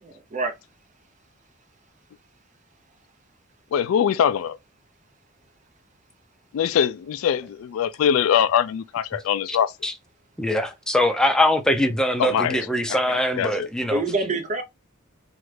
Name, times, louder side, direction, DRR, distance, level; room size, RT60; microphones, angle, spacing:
voice 1, 0.0-0.5 13.4-13.6 13.9-14.6, right 2 dB, 40° right, 0.7 m, -27 dB
voice 2, 3.7-4.6 6.5-9.7 12.2-12.6 12.9-13.7, left 8 dB, 75° left, 0.3 m, -23 dB
voice 3, 10.4-14.0, left 1 dB, 5° left, 0.5 m, -22 dB
3.1 x 2.4 x 3.2 m
head